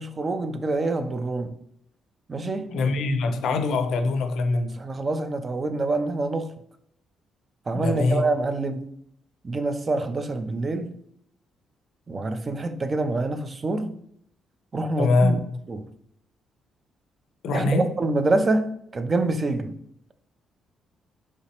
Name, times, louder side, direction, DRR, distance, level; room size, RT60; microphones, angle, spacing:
voice 1, 0.0-1.6 2.3-2.8 4.7-6.5 7.7-8.9 9.4-10.9 12.1-13.9 14.7-15.4 15.7-15.9 17.5-19.8, right 2 dB, 35° right, 0.3 m, -26 dB
voice 2, 2.7-4.8 7.7-8.2 15.0-15.4 17.4-17.9, left 3 dB, 75° left, 0.4 m, -23 dB
3.1 x 2.9 x 2.9 m
cardioid pair, 90°, 0 cm